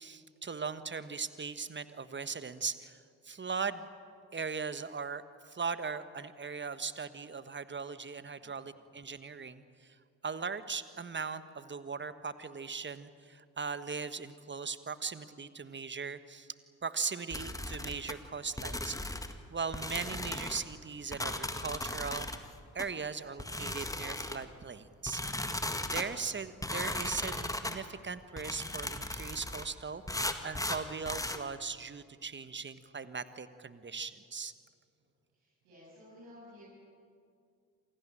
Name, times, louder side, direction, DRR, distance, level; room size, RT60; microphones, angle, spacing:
voice 1, 0.0-3.0 3.2-3.9 4.3-9.9 10.2-16.5 16.8-19.2 19.5-22.4 22.7-25.5 25.8-34.5, right 5 dB, 25° right, 13 dB, 1.4 m, -39 dB
sound 1, 17.3-18.1 18.6-19.4 19.7-20.6 21.1-22.4 22.8-22.9 23.4-24.4 25.1-26.1 26.6-27.8 28.4-29.7 30.1-31.4, left 1 dB, 10° left, 1.9 m, -37 dB
voice 2, 35.3-36.6, left 1 dB, 75° right, -7 dB, 8.0 m, -54 dB
27.5 x 18.5 x 8.9 m, 2.3 s
figure-of-eight pair, 40°, 44 cm